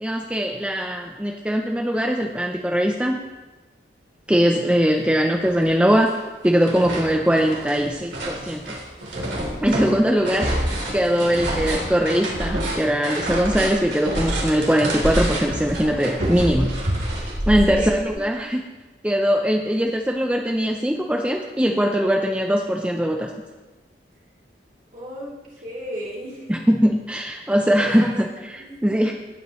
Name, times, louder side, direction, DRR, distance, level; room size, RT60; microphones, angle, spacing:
voice 1, 0.0-3.2 4.3-6.1 6.4-8.7 9.6-10.5 10.9-16.7 17.5-18.6 19.0-23.3 26.5-29.1, equal, 5° right, 1 dB, 0.5 m, -21 dB
sound 1, 5.0-5.1 5.4-6.2 6.4-18.1, right 1 dB, 90° right, 3.3 m, -27 dB
voice 2, 10.0-10.7 17.7-18.2 24.9-26.5 27.7-28.2 28.5-28.8, equal, 45° right, -5 dB, 2.8 m, -35 dB
Wind instrument woodwind instrument, 12.6-16.7, left 5 dB, 80° left, 4.4 m, -44 dB
17.5 x 8.4 x 3.1 m, 1.2 s
head